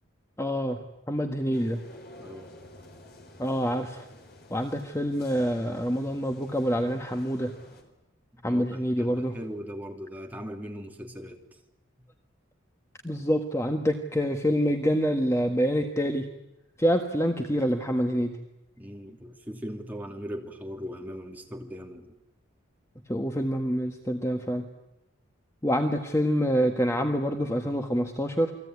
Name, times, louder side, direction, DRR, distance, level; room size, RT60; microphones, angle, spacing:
voice 1, 0.4-0.8 1.1-1.8 3.4-4.0 4.5-7.5 8.4-9.4 13.0-16.3 16.8-18.3 23.1-24.7 25.6-28.5, equal, 15° left, 4 dB, 1.5 m, -26 dB
sound 1, 1.5-7.8, left 1 dB, 50° left, 4.5 m, -50 dB
voice 2, 2.2-2.5 8.3-11.4 18.8-22.1, equal, 10° right, 1 dB, 3.0 m, -39 dB
29.0 x 21.0 x 9.7 m, 0.92 s
head